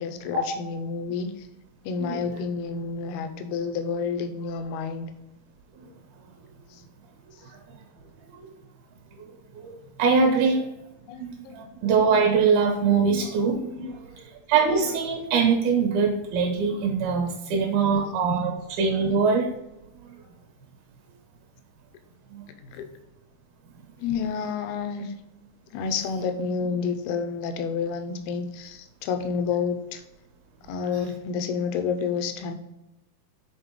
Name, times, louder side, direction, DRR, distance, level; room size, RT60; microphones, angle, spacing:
voice 1, 0.0-1.5 1.8-5.1 6.7-6.8 11.1-11.7 13.8-13.9 17.5-18.0 19.0-19.2 22.6-22.9 24.0-25.1 25.7-30.0 30.7-32.5, left 5 dB, 85° left, 7 dB, 2.5 m, -30 dB
voice 2, 2.0-2.3 8.3-8.5 9.2-9.3 9.5-10.7 11.1-14.0 14.5-19.5 22.3-22.4, right 5 dB, 75° right, 2 dB, 3.0 m, -23 dB
7.2 x 4.1 x 3.6 m, 0.94 s
omnidirectional pair, 4.5 m